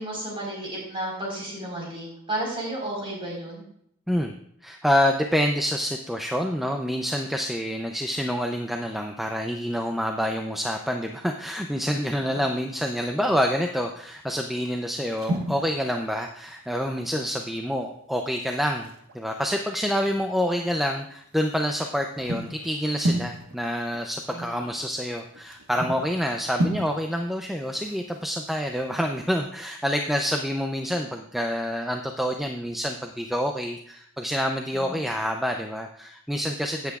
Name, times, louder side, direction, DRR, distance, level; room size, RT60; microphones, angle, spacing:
voice 1, 0.0-3.6 24.3-24.7 34.7-35.0, right 1 dB, 25° right, -2 dB, 4.1 m, -33 dB
voice 2, 4.6-37.0, equal, ahead, 3 dB, 0.4 m, -27 dB
sound 1, 12.8-13.4 14.1-14.3 14.6-17.3 17.5-17.6 17.9-18.0 18.5-20.6 21.1-29.4, right 1 dB, 70° right, 1.3 m, -34 dB
16.5 x 8.1 x 2.4 m, 0.70 s
head